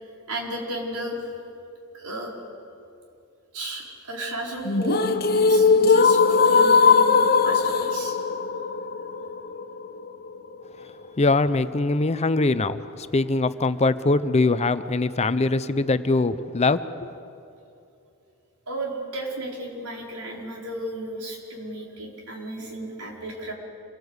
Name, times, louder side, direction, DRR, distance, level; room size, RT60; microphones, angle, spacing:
voice 1, 0.3-1.2 1.9-2.3 3.5-5.0 5.3-8.2 18.7-23.5, right 1 dB, 85° right, -2 dB, 4.8 m, -34 dB
sound 1, 4.7-10.7, left 5 dB, 45° left, 1.0 m, -19 dB
voice 2, 11.2-16.8, left 3 dB, 30° left, 12 dB, 0.6 m, -22 dB
27.0 x 19.0 x 8.1 m, 2.6 s
head